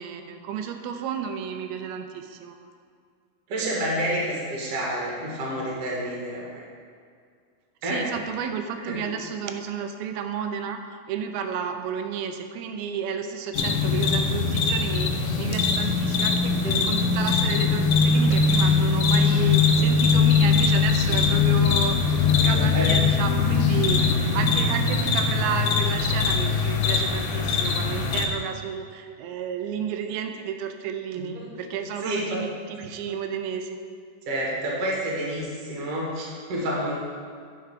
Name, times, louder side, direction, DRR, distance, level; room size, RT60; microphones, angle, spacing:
voice 1, 0.0-2.6 7.8-10.8 11.1-15.1 15.4-22.1 22.4-33.8, right 7 dB, 90° right, 6 dB, 2.5 m, -32 dB
voice 2, 3.5-6.6 7.8-8.1 8.9-9.0 16.6-16.8 22.4-22.9 31.3-31.5 32.0-32.4 34.3-36.9, right 1 dB, 50° right, -4 dB, 2.0 m, -29 dB
sound 1, 13.5-28.3, left 5 dB, 80° left, 1.8 m, -21 dB
9.7 x 4.5 x 4.7 m, 2.2 s
omnidirectional pair, 4.3 m